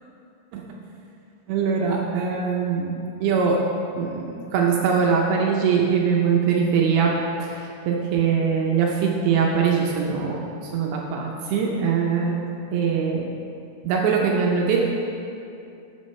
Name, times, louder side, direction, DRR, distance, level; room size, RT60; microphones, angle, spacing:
voice 1, 1.5-3.6 4.0-12.4 12.7-13.3 13.8-14.8, right 6 dB, 80° right, -1 dB, 2.6 m, -22 dB
12.5 x 8.3 x 3.2 m, 2.7 s
omnidirectional pair, 5.7 m